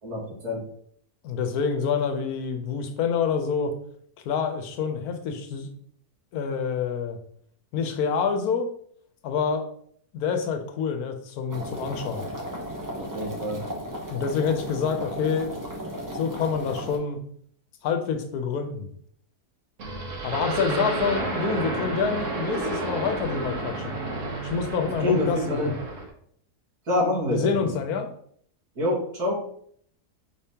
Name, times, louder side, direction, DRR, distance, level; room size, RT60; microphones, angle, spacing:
voice 1, 0.0-0.6 13.0-13.6 21.1-21.3 25.0-25.7 26.9-27.7 28.8-29.4, left 1 dB, 85° right, -6 dB, 2.2 m, -26 dB
voice 2, 1.2-3.7 4.3-5.7 6.3-7.2 7.7-8.7 9.2-9.7 10.1-12.2 14.1-15.6 16.1-17.2 17.8-18.9 20.2-24.0 24.4-25.7 27.3-28.1, left 6 dB, 80° left, 6 dB, 1.1 m, -27 dB
sound 1, 11.5-17.0, equal, 20° right, 0.5 m, -35 dB
sound 2, 19.8-26.1, right 2 dB, 55° right, 1.2 m, -31 dB
4.8 x 3.5 x 2.8 m, 0.63 s
omnidirectional pair, 1.6 m